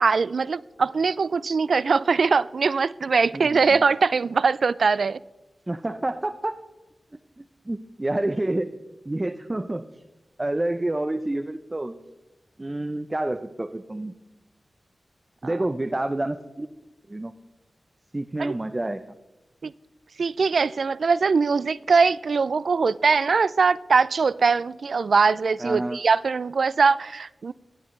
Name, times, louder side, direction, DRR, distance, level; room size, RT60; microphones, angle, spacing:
voice 1, 0.0-5.2 15.4-15.6 18.4-18.6 19.6-19.7 20.2-27.5, right 5 dB, 75° right, 0.3 m, -22 dB
voice 2, 5.7-6.5 7.4-8.7 9.1-10.0 10.4-12.0 12.6-14.1 15.4-16.7 17.1-17.3 18.1-19.0 25.6-26.0, right 1 dB, 25° right, 0.6 m, -28 dB
19.5 x 12.5 x 3.2 m
wide cardioid pair, 85°, 0 cm